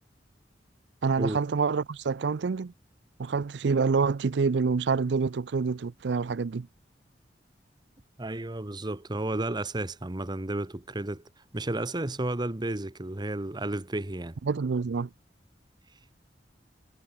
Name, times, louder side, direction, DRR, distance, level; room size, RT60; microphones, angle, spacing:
voice 1, 1.0-2.7 3.2-6.7 14.4-15.1, right 5 dB, 75° right, 0.5 m, -27 dB
voice 2, 8.2-11.2 11.5-14.4, right 2 dB, 25° right, 1.0 m, -32 dB
head